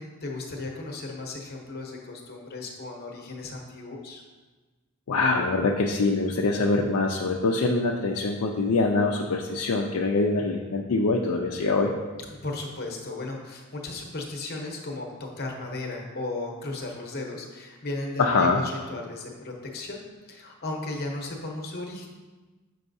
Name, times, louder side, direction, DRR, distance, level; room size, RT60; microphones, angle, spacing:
voice 1, 0.0-4.2 12.3-22.1, left 2 dB, 45° left, 1 dB, 0.9 m, -35 dB
voice 2, 5.1-11.9 18.2-18.6, left 3 dB, 70° left, 0 dB, 0.4 m, -24 dB
6.8 x 5.4 x 2.7 m, 1.3 s
head